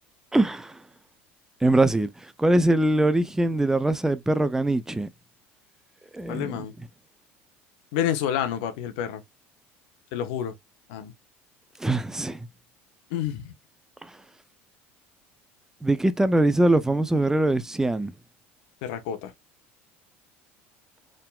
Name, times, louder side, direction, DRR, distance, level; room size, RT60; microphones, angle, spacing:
voice 1, 0.3-0.8 1.6-5.1 6.1-6.6 11.8-12.4 14.0-14.1 15.8-18.1, right 1 dB, 10° right, 0.6 m, -22 dB
voice 2, 6.3-6.7 7.9-9.2 10.1-10.5 10.9-11.1 13.1-13.5 18.8-19.3, left 10 dB, 75° left, 1.0 m, -29 dB
4.4 x 3.7 x 2.3 m
hypercardioid pair, 85°, 6 cm